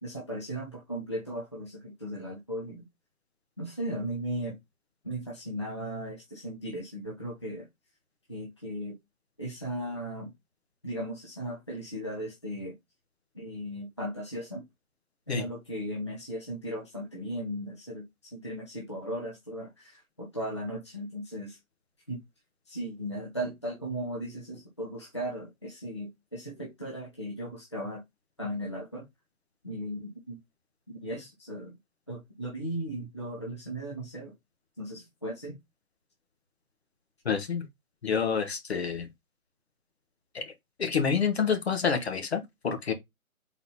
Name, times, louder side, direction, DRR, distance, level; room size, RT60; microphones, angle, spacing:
voice 1, 0.0-2.9 3.6-4.6 5.0-7.7 8.3-9.0 9.4-10.3 10.8-12.7 13.3-14.6 15.3-21.6 22.1-22.2 22.7-28.0 28.4-29.1 29.6-30.4 30.9-31.8 32.1-34.3 34.8-35.6, right 1 dB, 20° left, 0.6 m, -37 dB
voice 2, 37.2-37.6 38.0-39.1 40.3-40.4 40.8-42.9, left 6 dB, 45° left, 1.2 m, -28 dB
4.0 x 3.8 x 2.9 m
figure-of-eight pair, 160°, 43 cm